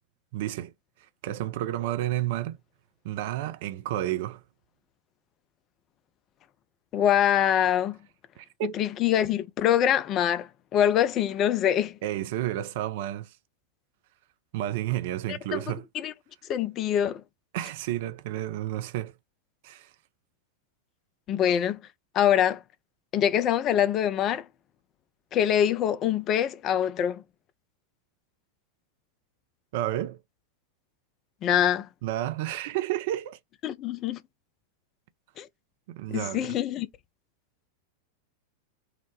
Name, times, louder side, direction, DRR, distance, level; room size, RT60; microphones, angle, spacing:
voice 1, 0.3-0.7 1.2-2.6 3.0-4.4 8.4-8.8 12.0-13.3 14.5-15.8 17.5-19.1 19.6-19.9 29.7-30.2 32.0-33.4 35.9-36.6, right 13 dB, 50° right, 0.4 m, -31 dB
voice 2, 6.9-8.0 8.6-12.0 15.3-16.1 16.5-17.2 21.3-21.8 22.1-22.6 23.1-24.5 25.3-27.2 31.4-31.9 33.6-34.2 35.4-35.5 36.1-36.9, left 10 dB, 30° left, 0.4 m, -24 dB
3.8 x 2.1 x 3.1 m
figure-of-eight pair, 90°, 0 cm